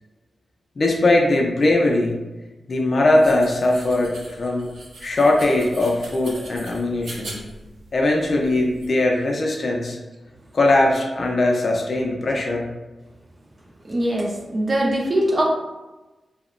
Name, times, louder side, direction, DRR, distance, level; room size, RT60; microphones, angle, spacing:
voice 1, 0.8-2.2 2.7-4.7 5.0-7.4 7.9-10.0 10.5-12.7, left 2 dB, 45° left, 0 dB, 0.4 m, -20 dB
sound 1, 3.2-8.9, right 2 dB, 80° right, 0.5 m, -41 dB
voice 2, 13.8-15.4, right 1 dB, 30° right, -2 dB, 0.5 m, -22 dB
2.8 x 2.0 x 2.4 m, 1.1 s
wide cardioid pair, 145°, 0 cm